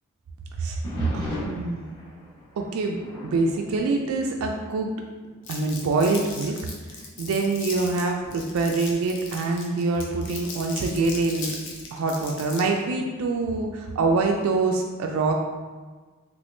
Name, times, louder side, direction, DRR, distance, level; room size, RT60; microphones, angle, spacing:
sound 1, 0.8-5.0 5.3-5.7 6.3-6.4 7.1-9.8 11.7-12.2, left 1 dB, 20° left, 1.1 m, -39 dB
voice 1, 1.1-1.9 2.6-4.9 5.5-6.6 6.9-11.6 11.9-15.3, right 3 dB, 70° right, 2 dB, 0.3 m, -25 dB
Crumpling crinkling, 5.4-12.8, left 4 dB, 60° left, 0.6 m, -38 dB
3.4 x 3.1 x 2.6 m, 1.4 s
head